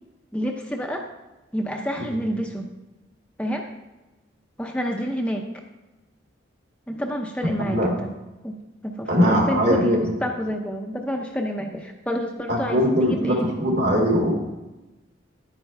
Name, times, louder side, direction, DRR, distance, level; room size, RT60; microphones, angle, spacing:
voice 1, 0.3-1.1 1.5-2.7 3.4-3.7 4.6-5.5 6.9-8.1 8.4-8.6 8.8-13.5, equal, 5° left, 1 dB, 0.6 m, -28 dB
voice 2, 7.4-7.9 9.1-10.0 12.5-14.3, equal, 65° right, -2 dB, 2.8 m, -21 dB
10.5 x 9.0 x 3.3 m, 1.1 s
head